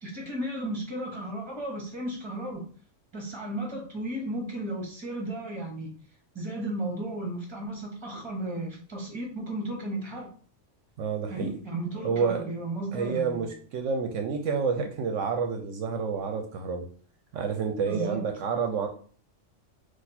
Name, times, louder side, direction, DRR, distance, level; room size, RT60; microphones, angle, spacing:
voice 1, 0.0-2.7 3.1-5.9 6.3-10.3 11.3-13.5 17.8-18.2, right 1 dB, 20° right, 1 dB, 1.2 m, -34 dB
voice 2, 11.0-11.5 12.0-12.5 12.9-16.9 17.3-18.9, right 5 dB, 75° right, 5 dB, 0.9 m, -29 dB
4.1 x 2.6 x 4.1 m, 0.43 s
omnidirectional pair, 1.3 m